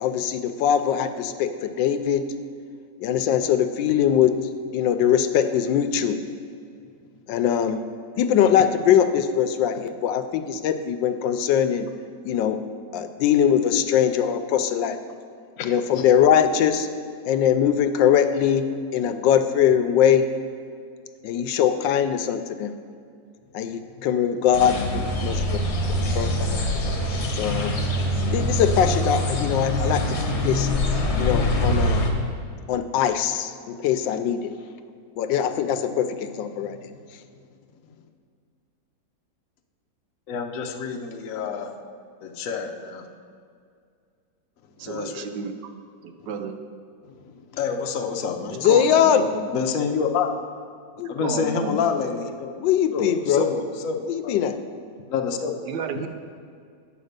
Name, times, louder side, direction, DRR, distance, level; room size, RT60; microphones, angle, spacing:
voice 1, 0.0-2.2 3.0-4.3 4.7-6.2 7.3-7.8 8.2-11.9 12.2-12.6 12.9-15.0 15.6-16.9 17.2-18.6 18.9-20.2 21.2-22.7 23.5-24.8 25.2-25.6 26.1-26.6 27.3-27.7 28.3-30.0 30.3-30.7 31.2-32.0 32.7-34.4 35.2-36.1 36.4-36.8 48.5-49.3 51.0-51.2 52.6-53.5 54.0-54.6, left 9 dB, 85° left, 9 dB, 1.2 m, -21 dB
sound 1, 24.5-32.1, left 1 dB, 45° left, 1.1 m, -24 dB
voice 2, 40.3-41.7 42.2-43.1 44.8-45.3 47.5-48.6 49.5-50.3 51.1-52.5 52.9-54.3 55.1-55.5, left 6 dB, 65° left, 4 dB, 0.8 m, -27 dB
voice 3, 44.8-45.5 46.0-46.6 48.6-49.4 51.2-51.8 55.7-56.1, right 6 dB, 75° right, 7 dB, 1.2 m, -31 dB
8.5 x 5.0 x 6.5 m, 2.2 s
omnidirectional pair, 2.0 m